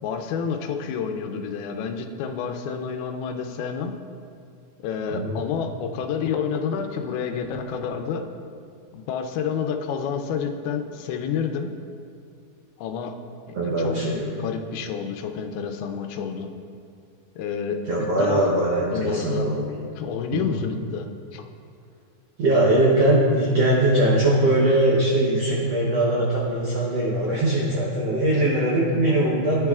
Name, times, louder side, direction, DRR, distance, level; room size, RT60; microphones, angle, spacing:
voice 1, 0.0-3.9 4.8-8.2 8.9-11.7 12.8-13.2 13.5-16.5 17.4-18.4 18.8-19.5 20.0-21.5 28.8-29.1, left 6 dB, 90° left, 5 dB, 2.6 m, -29 dB
voice 2, 5.1-5.5 13.5-14.4 17.9-19.9 20.3-20.6 22.4-29.7, right 1 dB, 75° right, -4 dB, 1.4 m, -21 dB
15.0 x 10.0 x 2.4 m, 2.4 s
omnidirectional pair, 4.3 m